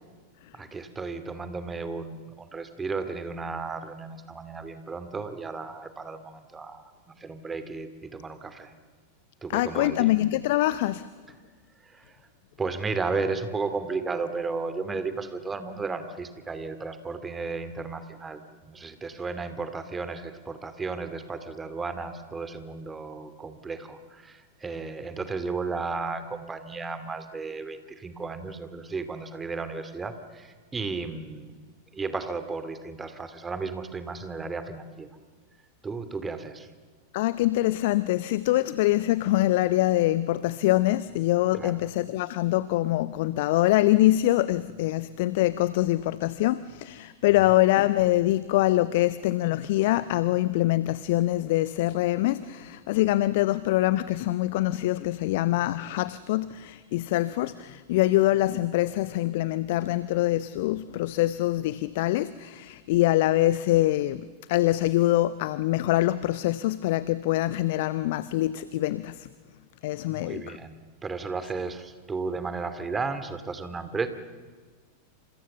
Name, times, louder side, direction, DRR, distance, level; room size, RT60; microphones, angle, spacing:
voice 1, 0.5-6.9 7.2-8.7 9.4-10.1 11.8-12.1 12.6-18.4 18.7-31.6 31.9-35.1 35.8-36.7 41.6-41.7 70.1-74.1, right 4 dB, 15° right, 10 dB, 2.6 m, -34 dB
voice 2, 9.5-11.1 37.1-69.3 69.8-70.6, left 16 dB, 50° left, 16 dB, 0.7 m, -24 dB
29.0 x 27.0 x 6.9 m, 1.5 s
figure-of-eight pair, 90°, 0 cm